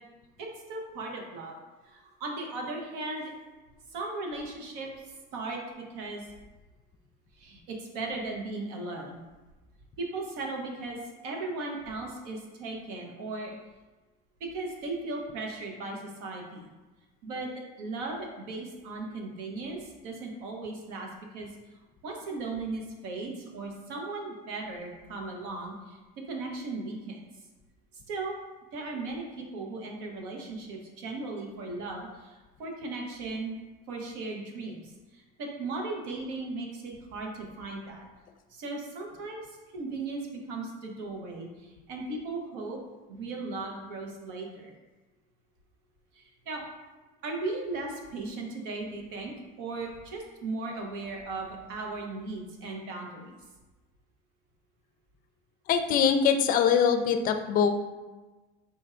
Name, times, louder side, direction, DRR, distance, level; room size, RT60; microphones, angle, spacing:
voice 1, 0.4-1.5 1.9-3.3 3.9-4.9 5.3-6.3 7.4-9.2 10.0-13.6 14.4-16.7 17.2-17.5 17.8-21.1 21.3-21.5 22.0-26.0 26.3-27.3 28.1-28.4 28.7-33.5 33.9-38.0 38.5-39.5 39.7-42.8 43.1-44.7 46.1-46.6 47.2-53.3, right 3 dB, 90° right, 0 dB, 0.9 m, -37 dB
voice 2, 55.7-57.7, left 7 dB, 45° left, 8 dB, 0.4 m, -23 dB
4.3 x 2.4 x 4.3 m, 1.2 s
cardioid pair, 130°, 20 cm